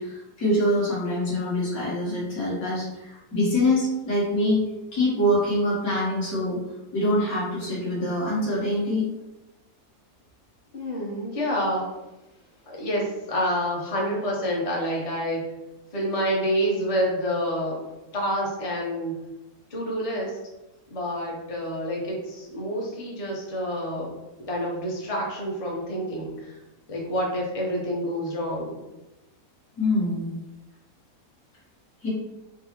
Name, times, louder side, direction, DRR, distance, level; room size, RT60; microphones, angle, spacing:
voice 1, 0.0-4.6 4.9-6.6 6.9-9.0 29.8-30.3 32.0-32.1, left 1 dB, 65° left, -7 dB, 1.7 m, -24 dB
voice 2, 10.7-11.9 12.7-15.4 15.9-17.8 18.1-19.1 19.7-20.4 20.9-24.1 24.5-26.5 26.9-28.8, equal, 35° left, -2 dB, 0.6 m, -28 dB
4.5 x 2.0 x 2.9 m, 1.0 s
omnidirectional pair, 1.7 m